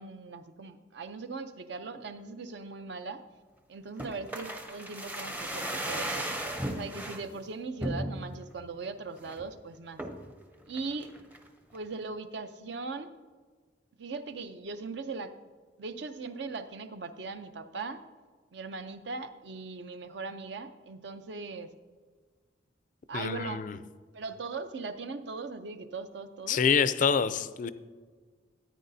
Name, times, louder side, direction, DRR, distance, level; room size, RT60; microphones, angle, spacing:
voice 1, 0.0-3.2 3.7-6.3 6.6-10.0 10.7-11.1 11.7-13.1 14.0-15.4 15.8-18.0 18.5-21.7 23.1-23.7 24.1-26.6, right 4 dB, 65° right, 10 dB, 0.6 m, -39 dB
sound 1, 4.0-7.2 7.8-8.4 8.8-8.9 9.2-9.5 10.0-10.3 10.8-11.5 11.7-11.8, right 1 dB, 10° right, 0.6 m, -36 dB
voice 2, 23.1-23.7 26.5-27.7, left 6 dB, 45° left, 14 dB, 0.3 m, -26 dB
14.0 x 9.4 x 2.7 m, 1.5 s
head